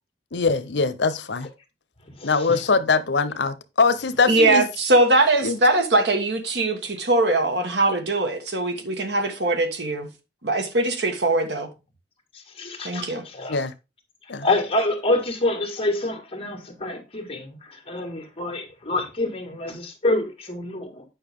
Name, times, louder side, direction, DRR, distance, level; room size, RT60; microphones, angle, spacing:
voice 1, 0.3-1.5 2.2-4.6 5.4-5.6 13.5-13.7 14.3-14.5, left 4 dB, 80° left, 0.8 m, -22 dB
voice 2, 4.3-10.1 10.4-11.7 12.8-13.3, right 2 dB, 70° right, 1.6 m, -21 dB
voice 3, 12.6-13.6 14.4-21.0, left 2 dB, 35° left, 2.0 m, -27 dB
8.8 x 5.6 x 3.6 m
head